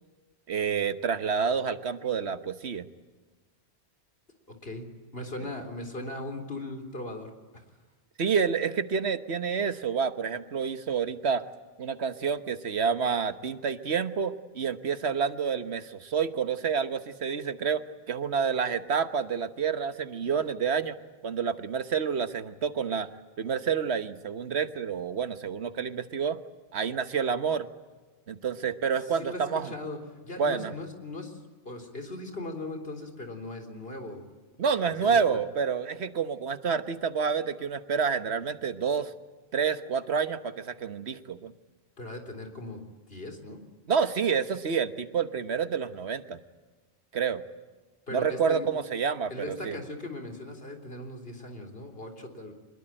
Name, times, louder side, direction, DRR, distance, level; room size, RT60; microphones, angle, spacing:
voice 1, 0.5-2.9 8.2-11.4 11.8-17.8 18.1-21.0 21.2-23.1 23.4-26.4 26.7-27.7 28.3-29.7 30.4-30.7 34.6-39.1 39.5-41.5 43.9-46.4 47.1-47.4 48.1-49.8, right 6 dB, 80° right, 11 dB, 1.5 m, -28 dB
voice 2, 5.1-7.6 29.1-34.2 35.0-35.4 42.0-43.6 48.1-48.7 49.3-52.5, left 2 dB, 65° left, 5 dB, 4.0 m, -39 dB
25.0 x 21.5 x 8.9 m, 1.3 s
omnidirectional pair, 1.1 m